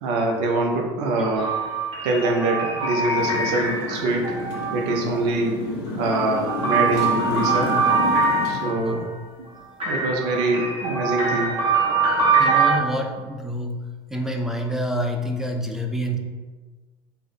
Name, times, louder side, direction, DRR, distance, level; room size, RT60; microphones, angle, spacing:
voice 1, 0.0-1.6 2.0-4.3 4.7-5.5 6.0-7.7 8.5-9.0 9.4-9.5 9.9-11.5, right 2 dB, 65° right, 1 dB, 0.5 m, -24 dB
sound 1, 1.4-5.2 5.9-9.0 9.8-12.8, right 4 dB, 40° right, 1.2 m, -23 dB
Motorcycle, 3.1-8.6, left 2 dB, 75° left, 0.6 m, -31 dB
voice 2, 8.6-9.1 12.4-13.8 14.1-16.2, equal, 5° right, 3 dB, 0.5 m, -27 dB
3.3 x 2.1 x 3.5 m, 1.3 s
hypercardioid pair, 70°, 13 cm